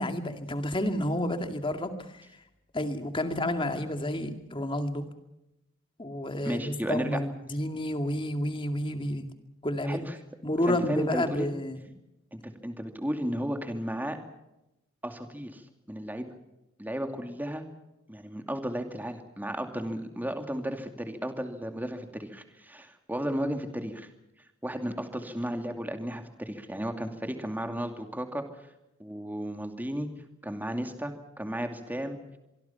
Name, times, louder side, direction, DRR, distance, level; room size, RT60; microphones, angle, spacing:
voice 1, 0.0-2.2 2.7-5.1 6.0-9.3 9.6-10.1 10.4-11.8, left 1 dB, 25° left, 7 dB, 2.2 m, -30 dB
voice 2, 6.4-7.2 9.8-10.2 10.6-11.5 12.3-14.2 15.0-15.6 15.9-16.3 16.8-17.6 18.1-24.1 24.6-28.5 29.0-30.1 30.4-32.2, equal, 10° right, 6 dB, 2.5 m, -34 dB
25.0 x 23.5 x 5.8 m, 0.90 s
head